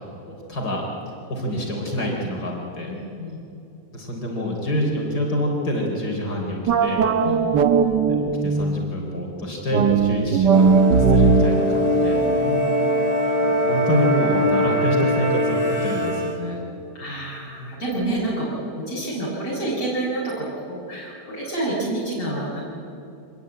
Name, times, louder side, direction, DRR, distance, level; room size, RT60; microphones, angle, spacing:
voice 1, 0.5-0.8 1.3-2.9 3.9-7.0 8.1-12.2 13.4-16.6, equal, 70° left, 0 dB, 4.5 m, -27 dB
voice 2, 2.9-3.4 7.2-7.5 12.4-12.9 16.9-22.6, right 1 dB, 50° left, -7 dB, 6.1 m, -28 dB
sound 1, 6.7-8.9 9.7-13.0, right 5 dB, 85° right, 1.7 m, -19 dB
sound 2, 10.5-16.4, left 1 dB, 20° right, 3.1 m, -22 dB
25.5 x 20.5 x 8.8 m, 2.7 s
omnidirectional pair, 1.8 m